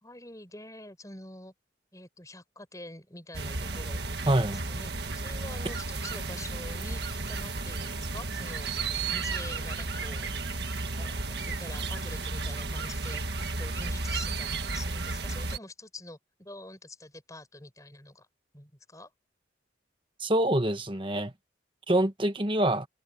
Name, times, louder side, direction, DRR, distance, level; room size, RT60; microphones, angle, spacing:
voice 1, 0.0-1.5 1.9-8.7 9.1-10.3 10.9-13.2 13.6-18.3 18.5-19.1, left 2 dB, 15° left, 5.6 m, -46 dB
sound 1, 3.3-15.6, right 3 dB, 55° right, 1.8 m, -33 dB
voice 2, 4.3-4.6 20.2-21.3 21.9-22.9, right 1 dB, 25° right, 1.4 m, -25 dB
head